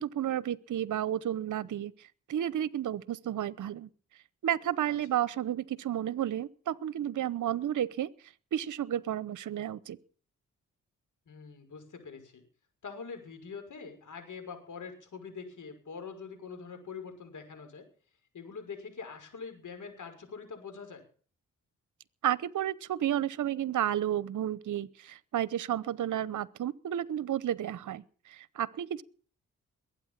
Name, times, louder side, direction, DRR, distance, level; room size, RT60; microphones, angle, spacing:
voice 1, 0.0-3.9 4.4-8.1 8.5-10.0 22.2-29.0, right 11 dB, 65° right, 0.9 m, -32 dB
voice 2, 11.3-12.4 12.8-17.8 18.3-21.0, left 5 dB, 65° left, 6.1 m, -44 dB
21.5 x 9.0 x 7.3 m
supercardioid pair, 45°, 33 cm